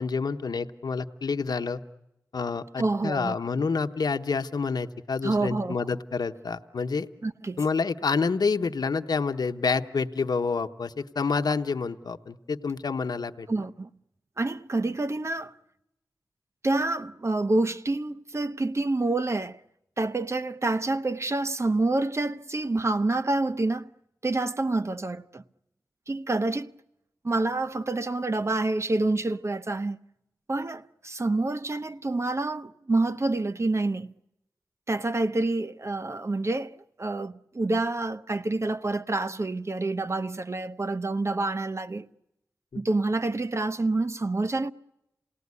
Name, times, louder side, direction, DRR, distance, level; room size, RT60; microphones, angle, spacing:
voice 1, 0.0-1.8 2.3-7.1 7.6-13.5 42.7-42.8, left 4 dB, 85° left, 0.9 m, -28 dB
voice 2, 2.8-3.4 5.2-5.8 7.2-7.6 13.5-13.9 14.4-15.5 16.6-19.6 20.0-23.9 24.2-25.4 26.1-26.7 27.2-30.0 30.5-34.1 34.9-42.1 42.8-44.7, right 2 dB, 45° right, 0.9 m, -27 dB
28.5 x 18.5 x 9.6 m
wide cardioid pair, 60°, 7 cm